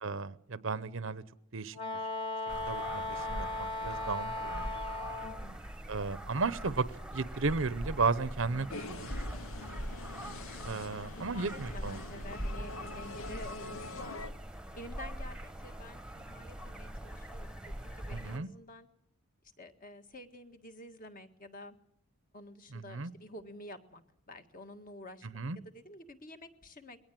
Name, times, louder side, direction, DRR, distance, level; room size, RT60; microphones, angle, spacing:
voice 1, 0.0-1.2 1.5-1.8 2.7-4.7 5.9-6.9 7.1-9.1 10.6-12.0 18.1-18.5 22.7-23.1 25.3-25.6, right 4 dB, 60° right, 16 dB, 0.8 m, -34 dB
Wind instrument woodwind instrument, 1.7-5.4, left 2 dB, 25° left, 1.6 m, -37 dB
sound 1, 2.5-18.4, equal, 5° right, 1.2 m, -42 dB
voice 2, 5.2-5.6 9.6-9.9 11.2-14.4 14.7-18.9 19.6-21.8 22.3-27.0, left 1 dB, 40° left, 7 dB, 1.9 m, -50 dB
sound 2, 8.7-14.3, left 2 dB, 65° left, 1.1 m, -45 dB
21.5 x 18.0 x 7.6 m, 0.74 s
head